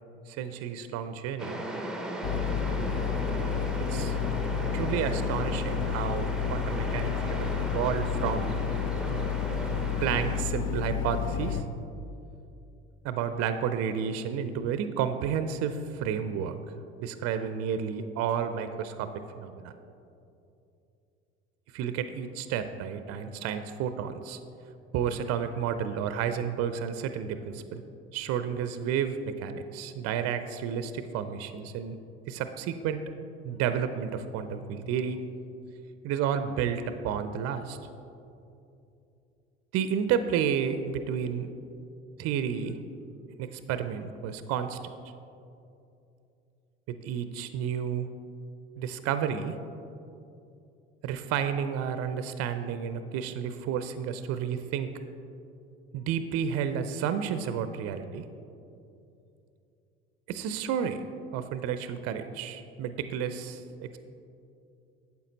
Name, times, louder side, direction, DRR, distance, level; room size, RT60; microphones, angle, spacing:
voice 1, 0.3-1.6 3.9-4.2 4.7-8.6 10.0-11.6 13.0-16.6 17.0-19.1 19.3-19.7 21.7-24.4 24.9-27.8 28.1-32.0 32.3-33.0 33.4-35.2 36.0-37.8 39.7-41.5 42.2-42.8 43.4-44.8 46.9-48.1 48.8-49.6 51.0-54.9 55.9-58.3 60.3-61.0 61.3-64.0, right 8 dB, 50° right, 10 dB, 0.5 m, -31 dB
sound 1, 1.4-10.4, right 1 dB, ahead, 0.7 m, -36 dB
sound 2, 2.2-11.6, left 7 dB, 50° left, 0.5 m, -30 dB
9.0 x 7.1 x 4.0 m, 2.7 s
hypercardioid pair, 65°, 31 cm